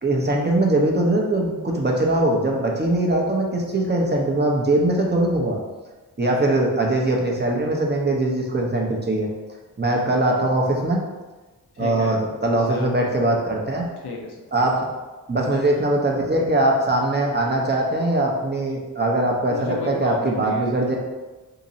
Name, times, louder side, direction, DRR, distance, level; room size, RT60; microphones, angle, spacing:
voice 1, 0.0-5.6 6.2-9.3 9.8-11.1 11.8-13.9 14.5-14.9 15.3-21.0, right 1 dB, 25° right, -1 dB, 0.8 m, -21 dB
voice 2, 11.7-13.0 14.0-14.7 19.5-20.9, left 4 dB, 80° left, 0 dB, 0.8 m, -33 dB
2.9 x 2.6 x 4.0 m, 1.2 s
cardioid pair, 50°, 39 cm